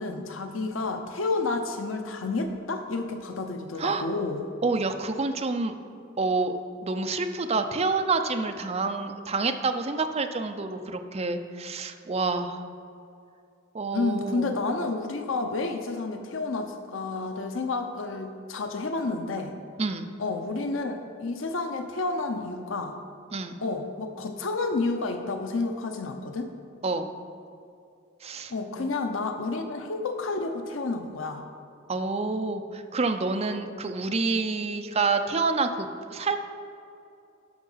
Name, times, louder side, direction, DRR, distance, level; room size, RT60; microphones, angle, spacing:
voice 1, 0.0-4.4 13.9-19.5 20.2-23.0 23.6-26.5 28.5-31.4, left 3 dB, 70° left, 6 dB, 0.8 m, -30 dB
voice 2, 4.6-5.7 6.2-6.5 6.8-12.6 13.7-14.5 19.8-20.1 23.3-23.5 26.8-27.1 28.2-28.9 31.9-36.4, right 3 dB, 30° right, 7 dB, 0.6 m, -28 dB
11.0 x 6.3 x 5.6 m, 2.5 s
head